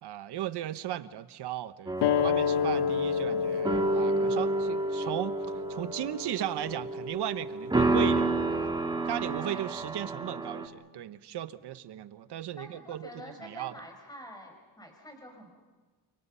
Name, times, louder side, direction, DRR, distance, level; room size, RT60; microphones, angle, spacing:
voice 1, 0.0-5.3 5.7-8.7 9.1-13.7, right 12 dB, 80° right, 13 dB, 1.1 m, -36 dB
sound 1, 1.9-10.7, right 2 dB, 10° right, 1.9 m, -30 dB
sound 2, 2.0-7.1, left 7 dB, 85° left, 1.0 m, -30 dB
voice 2, 9.0-9.6 12.6-15.6, equal, 10° left, 3 dB, 6.1 m, -47 dB
30.0 x 27.0 x 5.7 m, 1.3 s
cardioid pair, 125°, 39 cm